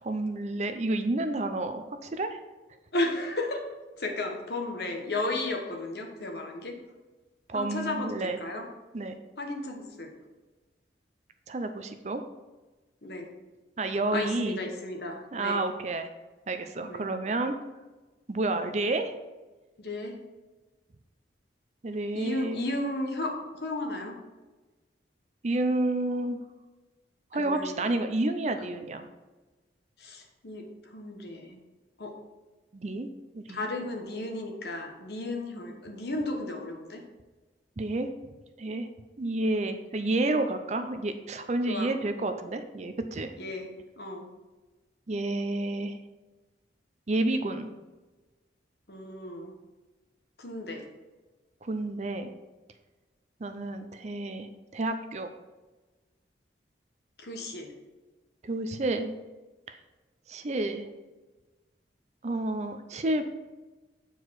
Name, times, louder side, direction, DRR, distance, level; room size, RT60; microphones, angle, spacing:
voice 1, 0.0-2.4 7.5-8.4 8.9-9.2 11.5-12.2 13.8-14.6 15.3-16.1 16.5-17.6 18.3-19.1 21.8-22.7 25.4-26.4 27.3-29.1 32.7-33.7 37.8-38.1 38.6-38.9 39.2-43.3 45.1-46.0 47.1-47.7 51.6-52.3 53.4-55.3 58.4-59.1 59.7-59.8 60.3-60.9 62.2-63.2, right 2 dB, 40° right, 8 dB, 0.5 m, -30 dB
voice 2, 2.9-3.6 4.0-6.8 7.5-8.7 9.4-10.1 13.0-13.3 14.1-15.7 16.8-17.0 19.8-20.2 22.1-24.2 27.3-27.8 30.0-31.6 32.0-32.1 33.5-37.0 41.7-41.9 43.4-44.3 48.9-49.5 50.4-50.8 57.2-57.7, left 2 dB, 60° left, 2 dB, 1.2 m, -34 dB
7.9 x 4.6 x 4.7 m, 1.2 s
head